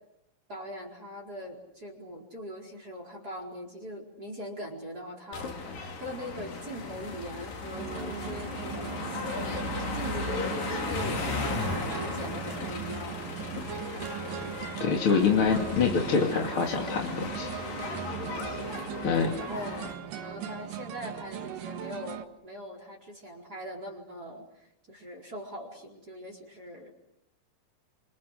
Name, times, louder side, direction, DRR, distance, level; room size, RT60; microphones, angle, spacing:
voice 1, 0.5-13.2 18.3-19.1 19.4-26.9, equal, 25° right, 2 dB, 4.9 m, -41 dB
sound 1, 5.3-19.9, left 3 dB, 80° left, 4.9 m, -36 dB
sound 2, 7.7-22.2, right 10 dB, 75° right, 3.1 m, -39 dB
voice 2, 14.8-17.5 19.0-19.4, left 5 dB, 40° left, 1 dB, 2.9 m, -25 dB
30.0 x 27.5 x 6.5 m, 0.82 s
omnidirectional pair, 3.9 m